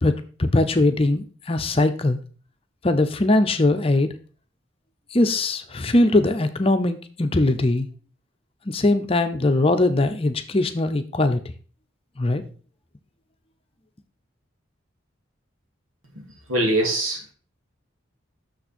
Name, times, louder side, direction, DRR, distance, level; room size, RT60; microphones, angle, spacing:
voice 1, 0.0-2.2 2.8-4.1 5.1-7.9 8.7-11.4 12.2-12.4, left 2 dB, 30° left, 8 dB, 0.7 m, -21 dB
voice 2, 16.5-17.3, right 1 dB, 85° right, 1 dB, 2.5 m, -22 dB
6.7 x 6.7 x 4.4 m, 0.38 s
head